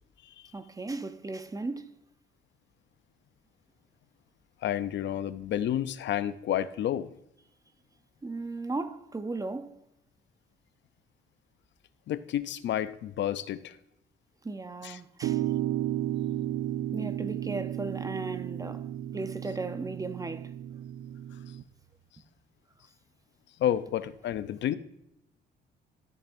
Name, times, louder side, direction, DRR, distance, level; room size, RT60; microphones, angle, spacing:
voice 1, 0.5-1.9 8.2-9.8 14.4-15.4 16.9-20.5, right 3 dB, 15° right, 0.7 m, -36 dB
voice 2, 4.6-7.1 12.1-13.8 14.8-15.0 23.6-24.8, left 11 dB, 65° left, 0.5 m, -30 dB
sound 1, 15.2-21.6, right 12 dB, 70° right, 0.4 m, -33 dB
13.0 x 6.7 x 2.6 m
cardioid pair, 90°, 20 cm